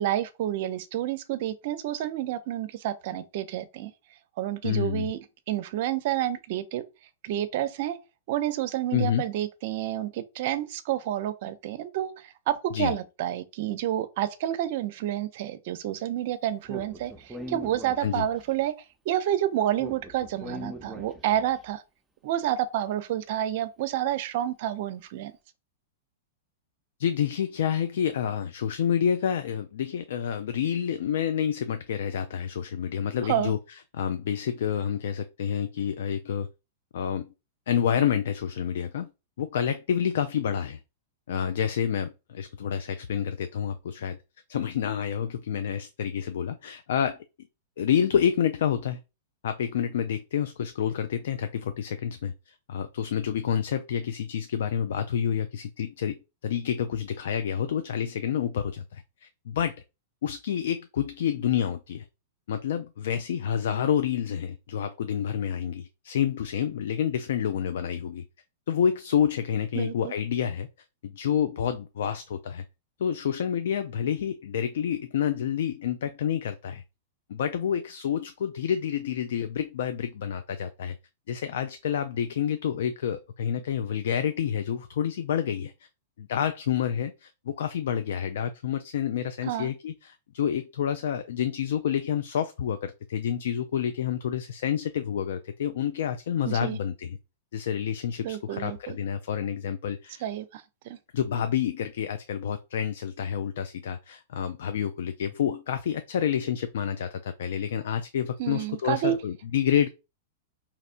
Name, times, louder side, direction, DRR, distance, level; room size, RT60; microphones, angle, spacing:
voice 1, 0.0-3.9 4.4-5.2 5.5-6.8 7.2-8.0 8.3-18.7 19.1-21.8 22.2-25.3 33.2-33.5 69.7-70.1 89.4-89.7 96.4-96.8 98.2-99.0 100.2-101.0 108.4-109.1, right 12 dB, 55° right, 0.5 m, -29 dB
voice 2, 4.6-5.1 8.9-9.2 12.7-12.9 18.0-18.2 27.0-33.6 33.9-36.5 36.9-37.3 37.7-39.1 39.4-40.8 41.3-44.2 44.5-47.2 47.8-49.0 49.4-59.8 60.2-62.1 62.5-68.2 68.7-70.7 71.0-72.6 73.0-76.8 77.3-80.9 81.3-85.9 86.2-97.2 97.5-100.2 101.1-109.9, left 8 dB, 65° left, 0.3 m, -28 dB
Speech, 16.7-18.5 19.8-21.5, equal, 5° right, 0.7 m, -40 dB
4.2 x 2.9 x 2.5 m
hypercardioid pair, 105°, 0 cm